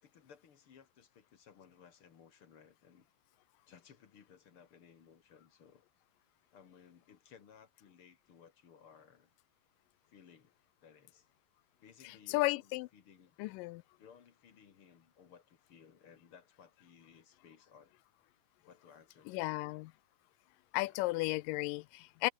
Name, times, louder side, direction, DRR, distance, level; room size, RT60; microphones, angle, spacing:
voice 1, 0.0-3.1 3.7-5.8 6.5-9.3 10.0-10.5 10.8-11.3 11.8-13.4 14.0-18.0 18.7-19.8 20.7-21.1, left 7 dB, 45° left, 2.3 m, -60 dB
voice 2, 12.3-12.9 13.4-13.8 19.3-19.9 20.7-22.3, left 21 dB, 85° left, 2.2 m, -34 dB
omnidirectional pair, 3.9 m